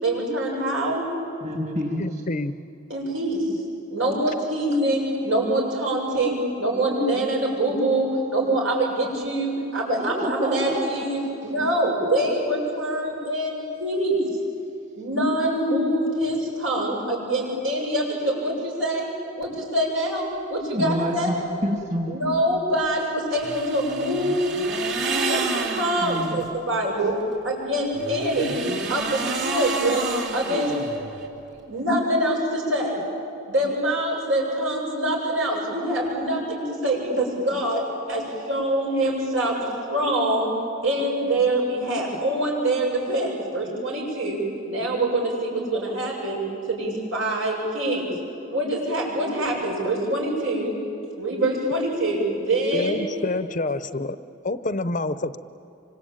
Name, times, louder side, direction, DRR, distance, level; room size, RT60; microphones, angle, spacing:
voice 1, 0.0-1.1 2.9-3.5 3.9-14.2 15.0-19.1 19.4-21.3 22.1-24.6 25.0-27.1 27.4-28.6 28.9-31.0 31.7-33.0 33.5-37.8 38.1-40.5 40.8-44.4 44.6-46.4 46.7-48.1 48.5-50.8 51.2-53.1, right 1 dB, 80° right, -2 dB, 7.5 m, -25 dB
voice 2, 1.4-2.0 10.0-11.5 20.7-21.3 21.6-22.1 26.0-26.4, equal, 35° right, 1 dB, 2.7 m, -28 dB
voice 3, 2.0-2.5 52.7-54.2 54.4-55.4, left 2 dB, 40° left, 13 dB, 0.7 m, -27 dB
sound 1, 23.3-26.5 27.9-31.3, right 4 dB, 60° right, 3.0 m, -29 dB
26.0 x 25.0 x 9.0 m, 2.8 s
head